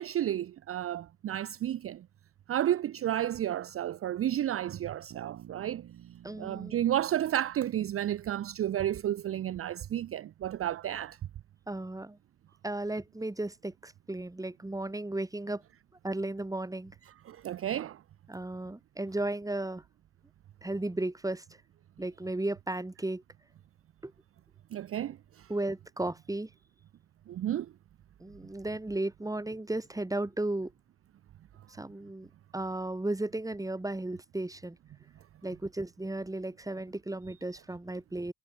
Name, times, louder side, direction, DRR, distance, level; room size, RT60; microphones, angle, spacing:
voice 1, 0.0-2.0 2.5-5.8 6.4-11.2 17.3-18.0 24.7-25.5 27.3-27.7, right 11 dB, 50° right, 0.6 m, -32 dB
Bass guitar, 5.1-9.2, right 11 dB, 70° right, 4.5 m, -52 dB
voice 2, 6.2-6.8 11.7-12.2 12.6-15.6 16.0-16.9 18.3-19.8 20.6-21.4 22.0-23.2 24.0-24.1 25.5-26.5 28.2-30.7 31.7-34.8 35.4-38.3, right 2 dB, 10° right, 4.5 m, -35 dB
cardioid pair, 90°, 30 cm